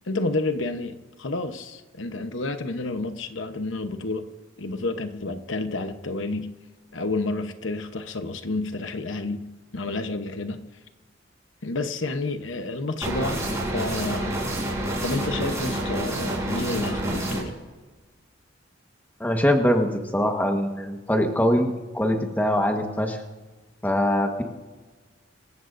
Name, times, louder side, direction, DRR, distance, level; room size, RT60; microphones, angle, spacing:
voice 1, 0.1-4.3 4.6-6.5 6.9-9.4 9.7-10.6 11.6-14.4 15.0-17.5, left 2 dB, 75° left, 1.0 m, -30 dB
sound 1, 13.0-17.4, right 1 dB, 15° right, 4.4 m, -28 dB
voice 2, 19.2-23.2 23.8-24.4, equal, 10° left, 1.3 m, -23 dB
26.0 x 15.0 x 2.6 m
head